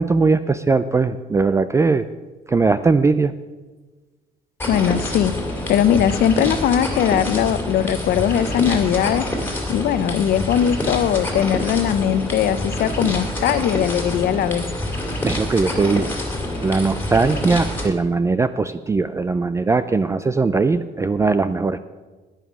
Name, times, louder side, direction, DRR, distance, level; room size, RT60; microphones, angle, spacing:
voice 1, 0.0-2.1 2.5-3.3 15.2-16.1 16.6-21.8, right 4 dB, 15° right, 12 dB, 0.4 m, -19 dB
sound 1, 4.6-17.9, left 1 dB, 10° left, 2.4 m, -26 dB
voice 2, 4.7-5.3 5.7-9.3 9.7-14.7, left 9 dB, 65° left, 14 dB, 0.7 m, -20 dB
11.0 x 9.2 x 6.1 m, 1.3 s
cardioid pair, 110°, 17 cm